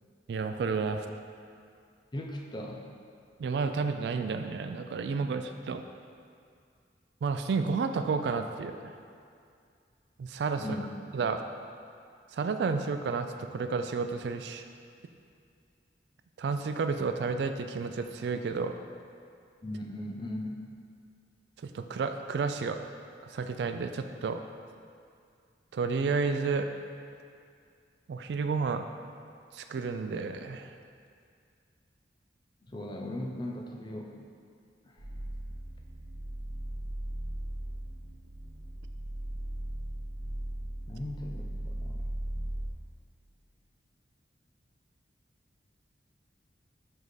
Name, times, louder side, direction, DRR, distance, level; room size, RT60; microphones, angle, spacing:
voice 1, 0.3-1.0 3.4-5.8 7.2-8.9 10.2-10.6 11.1-11.4 12.3-14.6 16.4-18.7 21.7-22.8 23.3-24.4 25.7-26.7 28.1-28.8 29.5-30.7, right 4 dB, 70° right, 7 dB, 0.3 m, -31 dB
voice 2, 2.1-2.9 10.6-10.9 19.6-20.6 32.7-34.2 34.8-35.0 40.9-42.1, left 1 dB, 25° left, 0 dB, 0.5 m, -38 dB
sound 1, 35.0-42.7, right 1 dB, 90° right, 1.0 m, -37 dB
5.2 x 4.7 x 3.9 m, 2.3 s
head